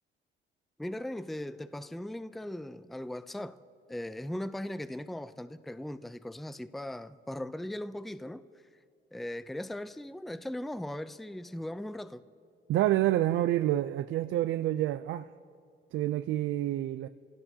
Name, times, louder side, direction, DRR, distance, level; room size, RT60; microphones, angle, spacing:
voice 1, 0.8-3.6 3.9-8.4 9.1-12.2, left 1 dB, ahead, 0.5 m, -38 dB
voice 2, 12.7-15.3 15.9-17.1, right 13 dB, 80° right, 0.4 m, -28 dB
26.5 x 17.0 x 2.8 m
cardioid pair, 90°, 20 cm